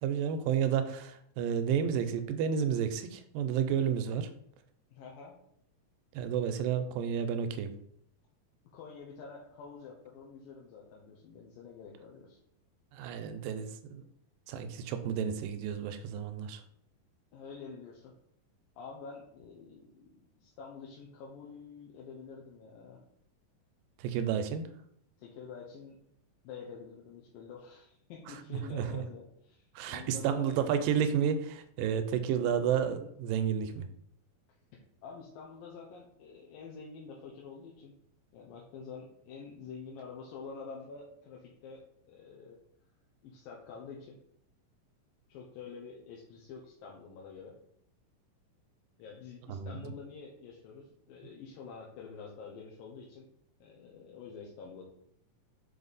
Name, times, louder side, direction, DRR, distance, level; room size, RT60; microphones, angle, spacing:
voice 1, 0.0-4.3 6.1-7.7 12.9-14.1 14.5-16.6 24.0-24.7 28.3-29.0 29.8-33.9 49.5-49.8, right 8 dB, 90° right, 9 dB, 2.3 m, -31 dB
voice 2, 4.9-5.3 8.7-12.4 17.3-18.1 18.8-23.0 25.2-26.0 26.4-30.6 35.0-37.9 38.3-42.6 43.2-44.2 45.3-47.6 49.0-53.3 53.6-54.8, left 5 dB, 85° left, -3 dB, 2.7 m, -48 dB
5.8 x 5.3 x 4.0 m, 0.69 s
omnidirectional pair, 3.9 m